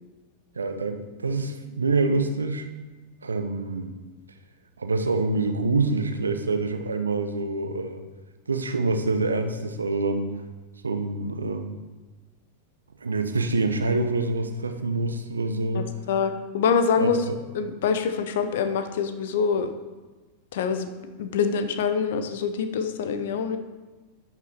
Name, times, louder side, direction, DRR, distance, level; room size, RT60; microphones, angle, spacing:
voice 1, 0.6-2.7 3.2-4.0 4.8-8.0 8.5-10.3 10.8-11.8 13.0-15.9 17.0-17.3, right 3 dB, 75° right, 7 dB, 0.7 m, -26 dB
voice 2, 15.7-17.2 17.5-19.7 20.5-20.9 21.2-23.6, left 6 dB, 55° left, 9 dB, 0.7 m, -25 dB
10.5 x 6.0 x 4.4 m, 1.3 s
figure-of-eight pair, 90°, 0 cm